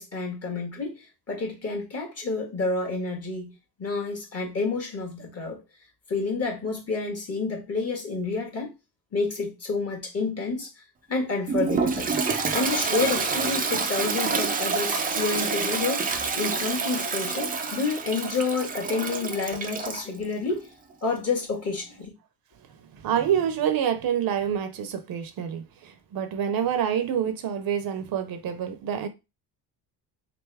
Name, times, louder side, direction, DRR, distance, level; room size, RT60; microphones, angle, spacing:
voice 1, 0.0-3.5 3.8-5.6 6.1-8.7 9.1-10.7 11.1-12.1 12.5-16.0 16.4-20.7 21.0-22.1, left 3 dB, 35° left, 1.5 m, -29 dB
Toilet flush, 11.5-20.0, right 4 dB, 20° right, 0.4 m, -27 dB
voice 2, 22.9-29.1, right 9 dB, 60° right, 0.7 m, -27 dB
3.8 x 3.4 x 3.4 m
cardioid pair, 150°, 41 cm